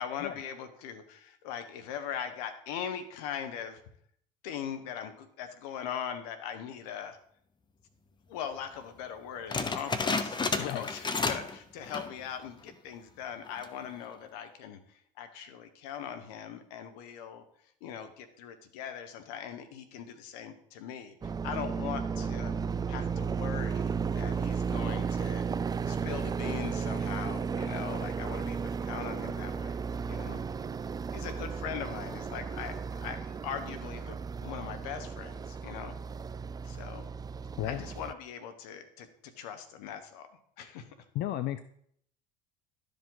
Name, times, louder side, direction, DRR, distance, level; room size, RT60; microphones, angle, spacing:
voice 1, 0.0-3.8 4.4-7.2 8.3-17.4 17.8-22.5 22.9-25.5 25.9-29.8 30.1-30.4 31.1-35.9 36.6-37.1 37.6-40.9, left 8 dB, 75° left, 9 dB, 1.1 m, -40 dB
sound 1, 9.5-11.6 11.8-12.2 12.7-12.8 13.4-13.8, left 4 dB, 25° left, 0.9 m, -31 dB
sound 2, 21.2-38.1, right 6 dB, 20° right, 0.4 m, -34 dB
voice 2, 41.1-41.6, left 13 dB, 55° left, 12 dB, 0.5 m, -33 dB
12.0 x 5.1 x 3.9 m, 0.67 s
hypercardioid pair, 75°, 20 cm